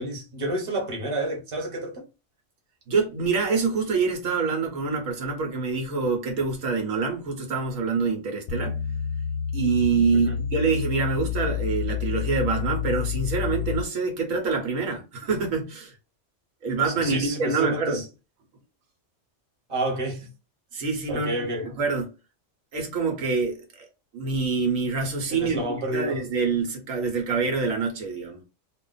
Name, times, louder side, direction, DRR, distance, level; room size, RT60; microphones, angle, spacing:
voice 1, 0.0-2.0 10.2-10.4 16.8-18.1 19.7-20.3 21.1-21.7 25.3-26.2, right 1 dB, 25° right, 1.0 m, -29 dB
voice 2, 2.9-8.8 9.5-15.9 16.6-18.0 20.7-21.3 21.6-22.1 22.7-23.6 24.1-28.4, right 4 dB, 80° right, 1.3 m, -26 dB
sound 1, 8.5-13.8, left 8 dB, 65° left, 0.7 m, -29 dB
2.4 x 2.4 x 3.9 m
omnidirectional pair, 1.4 m